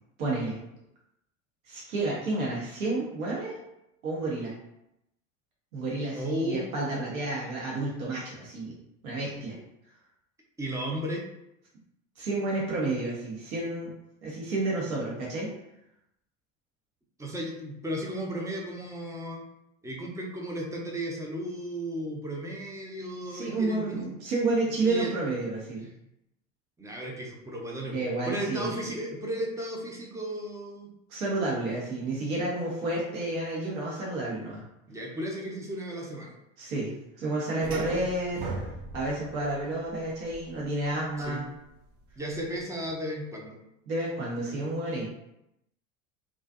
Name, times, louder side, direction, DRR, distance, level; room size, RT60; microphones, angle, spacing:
voice 1, 0.2-0.6 1.6-3.6 4.0-4.5 5.7-8.7 9.0-9.6 12.2-13.9 14.2-15.5 23.3-25.9 27.9-28.7 31.1-34.6 36.6-36.9 37.2-38.4 38.9-41.5 43.9-45.1, right 2 dB, 75° right, -4 dB, 0.9 m, -30 dB
voice 2, 6.2-6.7 10.6-11.2 17.2-19.4 19.8-24.0 24.8-25.1 26.8-28.0 28.2-30.9 34.9-36.3 37.6-38.0 41.2-41.4 42.2-43.6, equal, 10° right, -1 dB, 0.4 m, -34 dB
sound 1, 37.6-42.6, right 2 dB, 50° right, 0.6 m, -40 dB
2.4 x 2.3 x 2.4 m, 0.84 s
hypercardioid pair, 80°, 42 cm